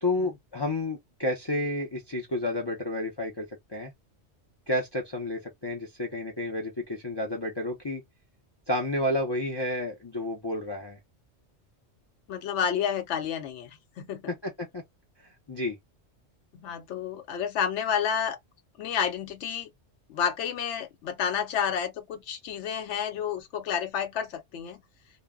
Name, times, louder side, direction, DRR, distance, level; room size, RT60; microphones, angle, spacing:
voice 1, 0.0-3.9 4.7-8.0 8.7-11.0 14.3-14.8 15.2-15.8, left 1 dB, 40° left, 0.3 m, -31 dB
voice 2, 12.3-14.3 16.5-18.4 18.8-19.7 20.1-24.8, left 8 dB, 75° left, 0.9 m, -30 dB
2.1 x 2.0 x 3.4 m
omnidirectional pair, 1.2 m